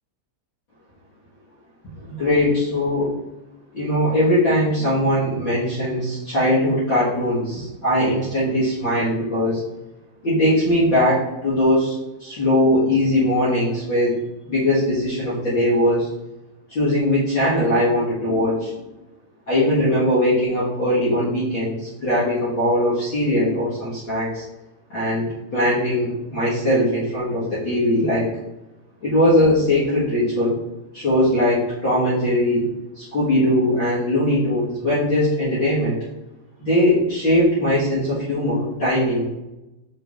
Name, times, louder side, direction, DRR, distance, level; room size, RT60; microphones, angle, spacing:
voice 1, 2.1-3.1 3.7-9.6 10.2-11.9 12.2-14.1 14.4-16.1 16.7-18.7 19.5-24.4 24.9-28.2 29.0-30.6 30.9-32.6 32.9-36.0 36.6-39.2, left 1 dB, 45° left, -9 dB, 1.7 m, -20 dB
6.5 x 6.1 x 2.6 m, 0.98 s
omnidirectional pair, 4.7 m